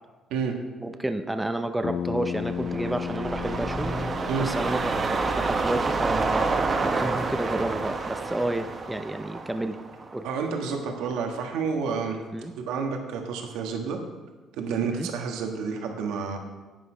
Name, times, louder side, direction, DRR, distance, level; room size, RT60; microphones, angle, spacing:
voice 1, 0.8-3.9 4.4-6.5 6.8-9.8 10.1-10.3 12.3-12.5 14.8-15.1, right 1 dB, 10° right, 7 dB, 0.6 m, -30 dB
Bass guitar, 1.8-6.1, left 8 dB, 50° left, 0.5 m, -35 dB
sound 1, 2.2-10.7 11.1-11.2, right 3 dB, 35° right, 1.0 m, -28 dB
voice 2, 10.2-12.2 12.6-14.0 14.5-16.4, right 5 dB, 90° right, 3 dB, 1.4 m, -29 dB
10.5 x 8.3 x 4.9 m, 1.3 s
cardioid pair, 110°, 0 cm